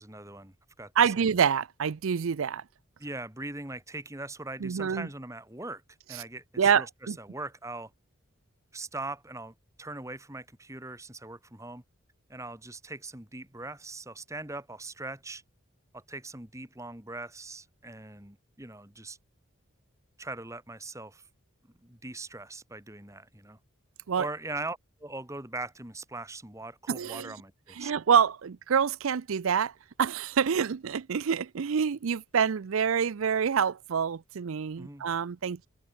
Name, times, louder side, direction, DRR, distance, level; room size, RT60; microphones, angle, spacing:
voice 1, 0.0-1.3 3.0-5.8 6.1-7.9 8.7-11.8 12.3-15.4 15.9-19.2 20.2-21.3 21.8-23.6 24.2-27.9 34.8-35.1, right 2 dB, 15° right, 2.1 m, -41 dB
voice 2, 1.0-2.6 4.6-5.1 6.6-7.2 24.1-24.3 26.9-27.3 27.8-29.7 30.0-35.7, right 7 dB, 75° right, 0.5 m, -26 dB
head